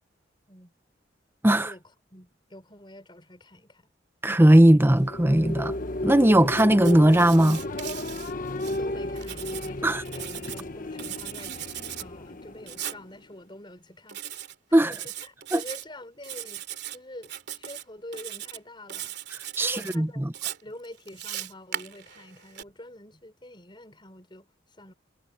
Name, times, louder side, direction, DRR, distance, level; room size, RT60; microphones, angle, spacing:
voice 1, 1.5-3.8 8.7-11.5 12.0-14.2 14.7-16.6 16.9-19.2 19.6-20.3 20.6-24.9, left 1 dB, 25° left, 5.5 m, -46 dB
voice 2, 4.2-5.7 6.0-7.6 9.8-10.0 14.7-14.9 15.5-15.6 19.6-20.2, right 1 dB, 10° right, 0.7 m, -18 dB
sound 1, 4.7-13.3, left 1 dB, 45° left, 1.2 m, -34 dB
Writing, 6.5-8.8 9.2-10.6 11.0-12.1 12.7-13.0 14.1-14.6 14.9-15.8 16.2-17.0 17.2-17.8 18.1-18.6 18.9-20.0 20.3-22.6, right 11 dB, 60° right, 2.9 m, -38 dB
head